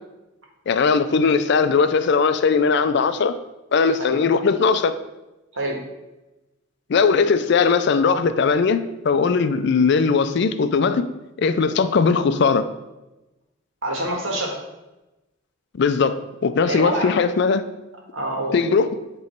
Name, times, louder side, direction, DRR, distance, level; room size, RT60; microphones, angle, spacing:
voice 1, 0.7-3.4 3.7-5.0 6.9-11.1 11.4-12.7 15.8-17.6 18.5-18.9, left 5 dB, 55° left, 11 dB, 0.4 m, -19 dB
voice 2, 13.8-14.6 16.6-17.2 18.1-18.6, right 1 dB, 75° right, -1 dB, 1.6 m, -26 dB
8.4 x 3.1 x 4.4 m, 1.0 s
head